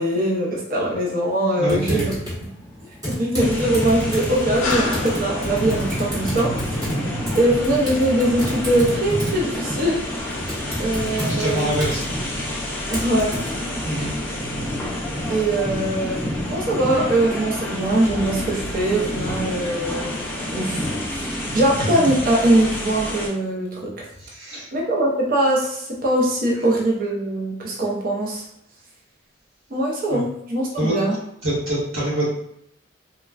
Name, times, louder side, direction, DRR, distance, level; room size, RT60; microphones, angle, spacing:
voice 1, 0.0-2.2 3.0-6.7 7.3-10.1 10.8-11.8 12.9-13.3 15.3-20.1 20.5-24.1 24.7-28.4 29.7-31.2, right 1 dB, 45° right, -3 dB, 0.6 m, -22 dB
voice 2, 1.6-2.1 11.1-12.0 13.8-14.1 24.2-24.7 30.1-30.2 30.8-30.9 31.4-32.2, right 1 dB, 85° right, -9 dB, 1.4 m, -25 dB
Typing, 1.7-13.5, equal, 20° right, 0.9 m, -31 dB
sound 1, 3.4-21.0, left 3 dB, 85° left, 0.5 m, -35 dB
sound 2, 3.4-23.3, equal, 10° left, 0.4 m, -29 dB
3.2 x 2.2 x 2.3 m, 0.75 s
head